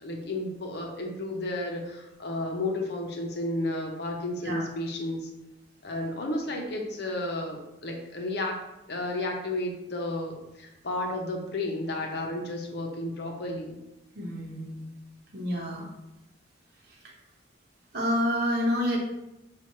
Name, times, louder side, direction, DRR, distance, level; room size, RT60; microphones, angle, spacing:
voice 1, 0.0-5.2 5.8-8.6 8.9-13.7, left 1 dB, 60° left, 1 dB, 0.7 m, -32 dB
voice 2, 14.1-14.8 15.3-15.9 17.9-19.0, equal, 55° right, -1 dB, 0.9 m, -28 dB
5.7 x 2.4 x 3.0 m, 0.94 s
head